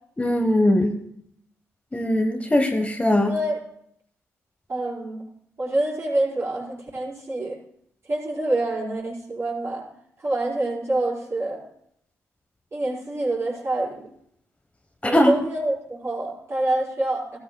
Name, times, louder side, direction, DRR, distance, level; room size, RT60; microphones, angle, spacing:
voice 1, 0.2-1.0 1.9-3.3 15.0-15.3, left 1 dB, 20° left, 5 dB, 1.2 m, -20 dB
voice 2, 3.2-3.6 4.7-5.3 5.6-7.6 8.1-9.8 10.2-11.6 12.7-14.1 15.0-17.4, right 2 dB, 40° right, -4 dB, 5.2 m, -26 dB
14.5 x 13.5 x 2.3 m, 0.70 s
supercardioid pair, 50°, 7 cm